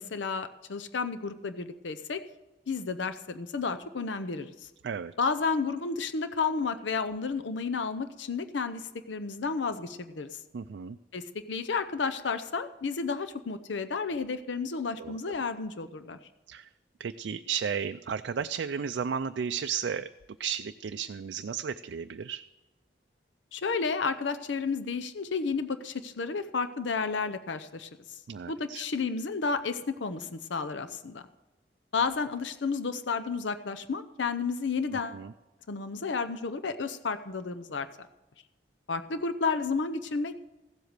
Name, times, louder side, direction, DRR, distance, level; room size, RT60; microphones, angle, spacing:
voice 1, 0.0-2.2 2.7-4.5 5.2-10.3 11.1-16.2 23.5-27.9 28.5-31.2 31.9-35.2 35.7-37.9 38.9-40.4, left 4 dB, 90° left, 10 dB, 0.7 m, -32 dB
voice 2, 10.5-11.0 15.0-15.3 16.5-16.7 17.0-20.1 20.4-22.4 28.3-28.8 34.9-35.3, right 7 dB, 75° right, 8 dB, 0.4 m, -34 dB
15.5 x 7.9 x 6.7 m, 1.1 s
head